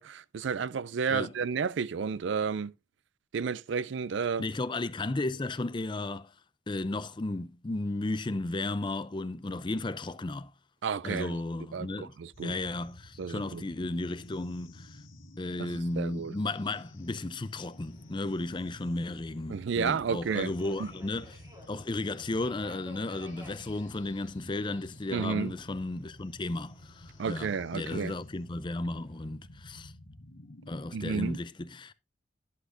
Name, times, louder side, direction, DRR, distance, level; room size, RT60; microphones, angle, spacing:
voice 1, 0.0-2.7 3.3-4.4 10.8-11.4 11.7-12.6 13.2-13.6 15.6-16.3 19.5-20.5 20.8-20.9 25.1-25.6 27.2-28.1 30.9-31.4, right 6 dB, 60° right, 0.4 m, -32 dB
voice 2, 4.4-6.3 6.7-10.5 11.0-12.1 12.4-14.9 15.4-21.3 21.7-29.9 30.7-31.9, left 2 dB, 25° left, 0.5 m, -34 dB
sound 1, 12.3-30.9, left 1 dB, 80° left, 2.0 m, -51 dB
Subway metro underground, 16.4-29.3, left 2 dB, 15° right, 2.9 m, -57 dB
11.5 x 8.4 x 2.6 m
head